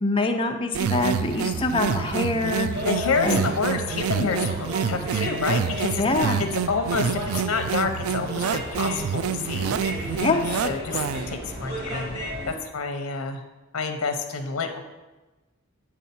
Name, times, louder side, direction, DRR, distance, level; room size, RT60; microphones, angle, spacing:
voice 1, 0.0-2.7 3.2-3.5 6.0-6.4 10.2-10.5, left 2 dB, 25° left, 4 dB, 0.5 m, -24 dB
sound 1, 0.7-11.4, right 7 dB, 75° right, 0.3 m, -27 dB
sound 2, 0.8-12.6, equal, 25° right, 1.8 m, -35 dB
voice 2, 2.9-6.0 6.7-7.1 7.4-10.2 10.6-12.2 12.5-13.4 13.7-14.8, left 4 dB, 85° left, 6 dB, 0.7 m, -28 dB
8.5 x 3.6 x 4.3 m, 1.1 s
head